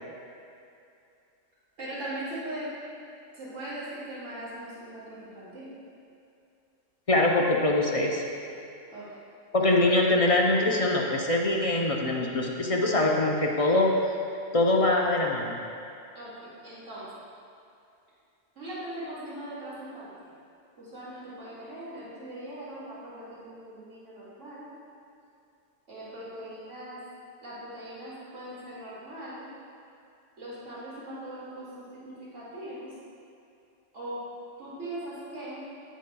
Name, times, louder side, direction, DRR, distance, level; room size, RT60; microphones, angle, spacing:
voice 1, 1.8-2.7 3.3-5.7 8.9-9.1 9.6-9.7 16.1-17.1 18.6-20.3 20.8-24.7 25.9-27.0 27.4-29.5 30.4-32.9 33.9-34.2 34.6-35.6, right 1 dB, 70° right, -10 dB, 2.4 m, -40 dB
voice 2, 7.1-8.2 9.5-13.9 14.5-15.6, left 2 dB, 40° left, -1 dB, 0.5 m, -23 dB
10.0 x 8.1 x 2.2 m, 2.6 s
omnidirectional pair, 1.3 m